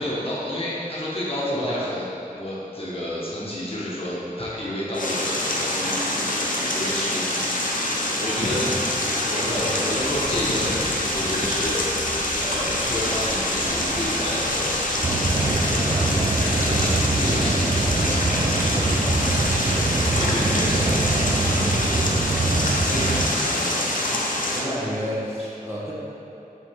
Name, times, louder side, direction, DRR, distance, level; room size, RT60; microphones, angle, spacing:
voice 1, 0.0-2.0 2.3-8.7 9.3-23.9 24.3-24.5 25.4-25.5, left 1 dB, 40° left, -8 dB, 1.4 m, -31 dB
voice 2, 1.4-1.8 8.3-8.8 9.5-9.7 20.1-20.4 24.5-25.9, equal, 20° right, -8 dB, 1.4 m, -31 dB
sound 1, 4.9-24.6, left 1 dB, 65° left, 0.7 m, -25 dB
sound 2, 9.9-22.5, equal, 85° right, 1.0 m, -38 dB
sound 3, 15.0-23.3, right 3 dB, 35° right, 0.4 m, -24 dB
7.3 x 3.9 x 3.7 m, 2.9 s
wide cardioid pair, 55°, 15 cm